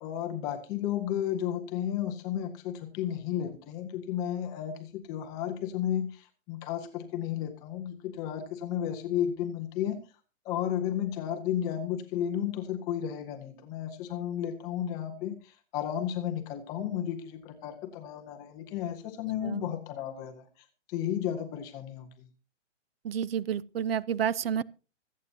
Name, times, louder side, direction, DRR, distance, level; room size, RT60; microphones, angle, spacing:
voice 1, 0.0-10.0 10.4-20.5 20.9-22.3, left 10 dB, 10° left, 0.5 m, -33 dB
voice 2, 23.0-24.6, right 8 dB, 55° right, 0.5 m, -30 dB
25.0 x 8.4 x 2.7 m
hypercardioid pair, 155°, 36 cm